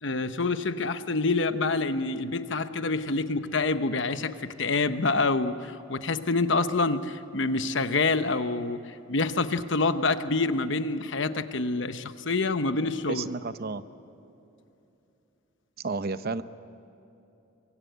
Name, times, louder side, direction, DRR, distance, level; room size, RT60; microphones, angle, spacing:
voice 1, 0.0-8.8 9.1-13.3, left 3 dB, 65° left, 10 dB, 1.0 m, -27 dB
voice 2, 13.1-13.8 15.8-16.4, right 3 dB, 50° right, 13 dB, 0.7 m, -31 dB
24.0 x 23.0 x 8.1 m, 2.8 s
head